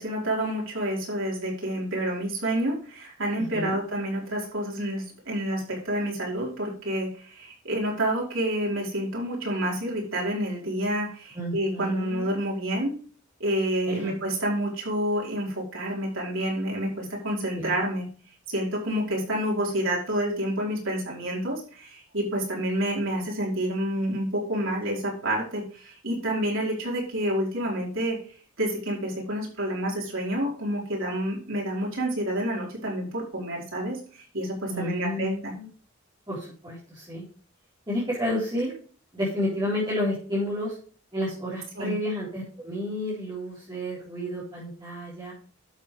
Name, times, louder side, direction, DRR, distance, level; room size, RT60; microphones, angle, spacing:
voice 1, 0.0-13.0 13.4-18.1 18.5-28.2 28.6-35.5 41.7-41.9, right 1 dB, 65° right, -3 dB, 4.9 m, -28 dB
voice 2, 3.4-3.8 11.3-12.3 13.9-14.1 17.5-17.7 34.7-35.7 36.3-37.2 37.9-38.7 39.1-40.8 41.1-45.3, left 1 dB, 20° right, -9 dB, 4.3 m, -31 dB
12.0 x 7.2 x 3.4 m, 0.42 s
head